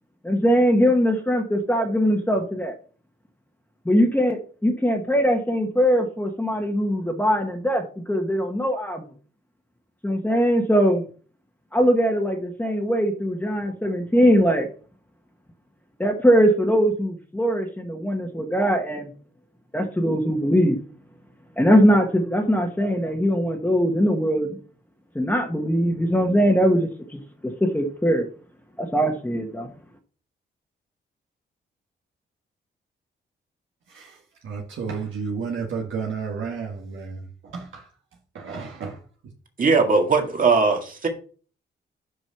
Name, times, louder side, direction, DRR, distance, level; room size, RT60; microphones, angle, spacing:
voice 1, 0.2-2.7 3.8-9.0 10.0-11.0 11.7-14.7 16.0-19.1 19.7-20.8 21.6-24.6 25.1-28.3 28.8-29.7, equal, 10° left, 1.3 m, -21 dB
voice 2, 34.4-37.9 38.3-39.0, right 5 dB, 80° right, 1.5 m, -32 dB
voice 3, 39.6-41.1, right 4 dB, 45° right, 1.9 m, -19 dB
6.2 x 5.3 x 5.8 m
cardioid pair, 105°, 20 cm